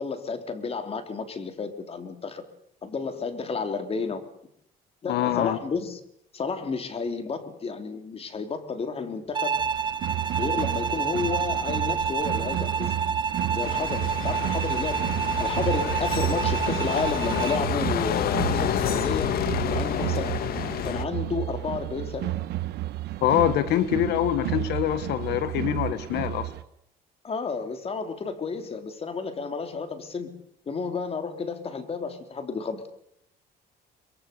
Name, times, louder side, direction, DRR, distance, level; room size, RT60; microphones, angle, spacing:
voice 1, 0.0-2.4 2.8-4.2 5.0-6.0 6.3-9.6 10.4-13.0 13.5-20.4 20.8-22.3 27.2-30.4 30.7-32.9, left 4 dB, 35° left, 8 dB, 3.3 m, -31 dB
voice 2, 5.1-5.6 23.2-26.5, left 12 dB, 80° left, 13 dB, 1.6 m, -24 dB
Bowed string instrument, 9.3-17.7, right 6 dB, 25° right, 1.2 m, -29 dB
sound 1, 9.5-26.6, right 15 dB, 75° right, 1.3 m, -32 dB
sound 2, 13.6-21.1, left 10 dB, 65° left, 1.6 m, -29 dB
23.5 x 22.0 x 6.8 m, 0.72 s
cardioid pair, 110°, 17 cm